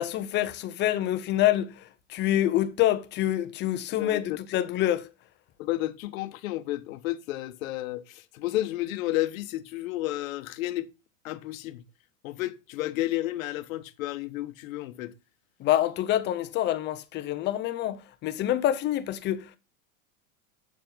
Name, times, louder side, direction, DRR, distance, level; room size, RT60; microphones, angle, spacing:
voice 1, 0.0-1.8 2.1-5.1 15.6-19.6, left 13 dB, 25° left, 0.8 m, -26 dB
voice 2, 4.0-4.4 5.6-10.9 11.2-11.8 12.2-15.1, left 16 dB, 75° left, 1.3 m, -32 dB
8.5 x 7.1 x 3.9 m
supercardioid pair, 165°, 41 cm